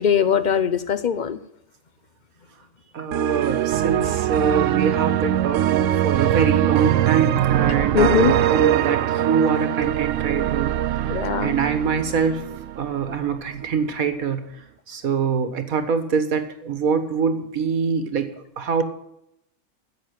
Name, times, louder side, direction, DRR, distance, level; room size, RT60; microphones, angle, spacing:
voice 1, 0.0-1.4 7.9-8.3 11.1-11.5, left 7 dB, 45° left, 13 dB, 0.7 m, -20 dB
voice 2, 2.9-12.5 12.8-14.5 14.9-18.3 18.6-18.8, right 6 dB, 85° right, 9 dB, 1.9 m, -24 dB
sound 1, 3.1-13.2, right 12 dB, 70° right, 0.9 m, -22 dB
10.5 x 7.5 x 9.1 m, 0.77 s
omnidirectional pair, 1.4 m